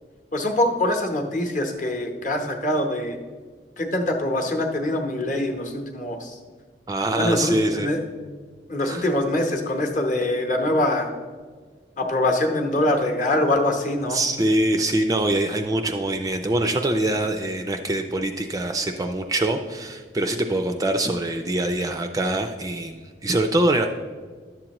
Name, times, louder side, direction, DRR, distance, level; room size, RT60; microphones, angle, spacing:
voice 1, 0.3-3.2 3.8-6.4 7.2-8.0 8.7-11.1 12.0-14.2, left 1 dB, 40° left, 3 dB, 0.8 m, -24 dB
voice 2, 6.9-7.9 8.9-9.0 14.1-24.0, right 1 dB, 20° right, 6 dB, 0.3 m, -24 dB
11.0 x 7.4 x 2.9 m, 1.5 s
head